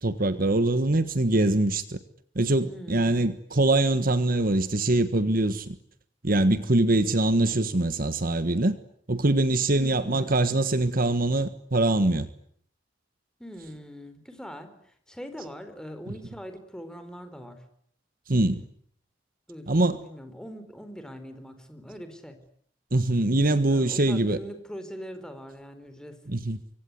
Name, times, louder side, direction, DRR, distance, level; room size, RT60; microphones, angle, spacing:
voice 1, 0.0-2.0 2.3-5.7 6.2-8.8 9.1-12.3 18.3-18.6 19.7-20.0 22.9-24.4 26.3-26.6, right 2 dB, 50° right, 1.5 m, -23 dB
voice 2, 2.6-3.2 9.8-10.3 13.4-17.6 19.5-22.4 23.6-26.2, equal, 5° left, 4.3 m, -42 dB
25.5 x 24.5 x 9.7 m
head